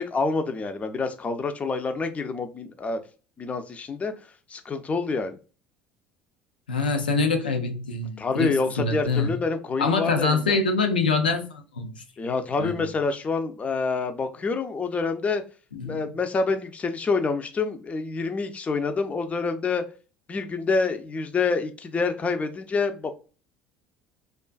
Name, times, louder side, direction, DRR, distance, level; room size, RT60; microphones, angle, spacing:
voice 1, 0.0-3.0 3.4-4.1 4.5-5.4 8.2-10.6 12.2-15.4 15.8-19.8 20.3-23.2, left 4 dB, 30° left, 0.5 m, -27 dB
voice 2, 6.7-9.4 9.8-12.0 12.6-12.9 15.7-16.1, left 4 dB, 85° left, 0.4 m, -25 dB
2.4 x 2.3 x 2.3 m
hypercardioid pair, 65°, 5 cm